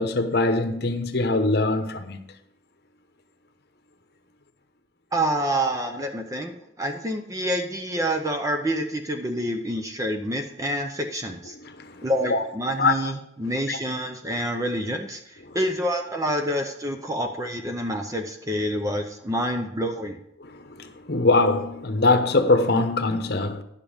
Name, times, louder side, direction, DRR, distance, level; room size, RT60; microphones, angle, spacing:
voice 1, 0.0-2.2 11.6-12.4 12.8-13.0 13.7-13.8 15.5-15.6 20.4-23.6, left 2 dB, 55° left, 1.0 m, -23 dB
voice 2, 5.1-11.5 12.0-20.2, equal, 20° right, 0.7 m, -27 dB
10.5 x 6.9 x 5.3 m
head